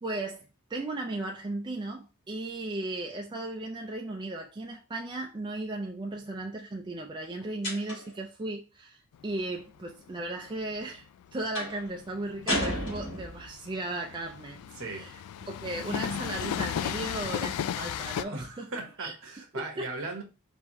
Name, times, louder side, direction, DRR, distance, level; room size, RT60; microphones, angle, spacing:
voice 1, 0.0-14.6 14.9-15.2 15.5-18.7 19.0-19.1 19.5-19.9, right 2 dB, 20° right, 0.4 m, -36 dB
sound 1, 7.6-8.2 11.5-11.8 12.5-13.5, equal, 60° left, 2.8 m, -32 dB
Train, 9.1-18.2, left 9 dB, 85° left, 0.3 m, -35 dB
voice 2, 14.8-15.1 18.2-20.2, right 3 dB, 60° right, 1.3 m, -38 dB
4.4 x 3.4 x 3.0 m
head